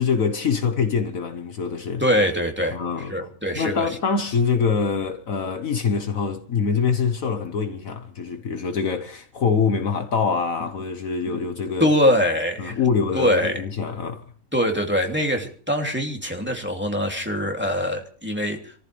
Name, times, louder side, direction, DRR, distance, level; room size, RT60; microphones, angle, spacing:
voice 1, 0.0-2.0 2.7-3.3 3.5-11.9 12.6-14.3, left 5 dB, 60° left, 1.5 m, -24 dB
voice 2, 2.0-3.9 11.8-12.8 13.1-13.6 14.5-18.7, equal, 5° right, 2.6 m, -23 dB
28.0 x 14.5 x 3.3 m
omnidirectional pair, 1.6 m